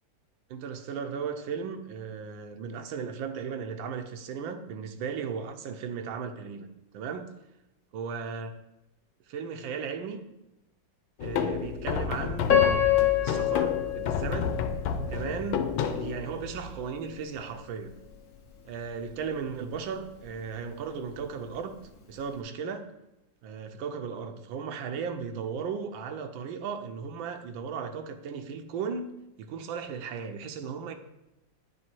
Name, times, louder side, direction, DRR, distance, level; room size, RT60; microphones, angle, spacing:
voice 1, 0.5-6.7 6.9-7.3 7.9-8.5 9.3-10.3 11.2-14.6 15.0-17.9 18.6-21.8 22.1-22.9 23.4-30.9, right 6 dB, 85° right, 7 dB, 1.4 m, -36 dB
sound 1, 11.2-16.7, left 6 dB, 85° left, 1.4 m, -31 dB
Piano, 12.5-15.5 16.1-16.2 16.8-17.1, left 11 dB, 55° left, 1.4 m, -26 dB
9.5 x 3.5 x 4.4 m, 0.92 s
omnidirectional pair, 2.1 m